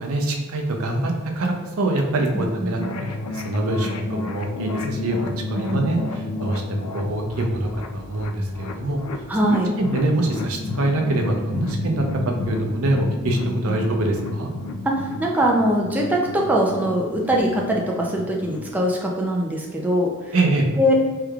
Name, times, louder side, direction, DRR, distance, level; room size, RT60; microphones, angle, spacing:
voice 1, 0.0-2.8 3.3-9.0 9.4-12.0 12.5-14.5 20.3-20.7, right 2 dB, 70° right, 2 dB, 0.5 m, -24 dB
voice 2, 2.3-2.9 5.5-5.9 9.3-9.7 13.7-13.8 14.8-20.4 20.8-20.9, equal, 10° right, -2 dB, 0.4 m, -22 dB
sound 1, 2.8-18.7, left 2 dB, 90° left, 0.4 m, -31 dB
3.3 x 3.2 x 2.3 m, 1.4 s
head